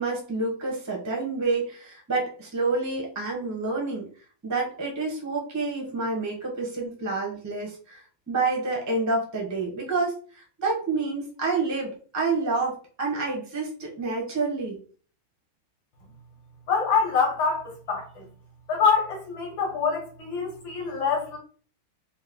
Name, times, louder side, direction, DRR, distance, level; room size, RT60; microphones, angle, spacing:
voice 1, 0.0-4.1 4.4-14.8, right 3 dB, 20° right, 0.4 m, -28 dB
voice 2, 16.7-18.2 18.7-21.4, left 5 dB, 65° left, 1.9 m, -25 dB
4.2 x 2.1 x 3.6 m
omnidirectional pair, 2.3 m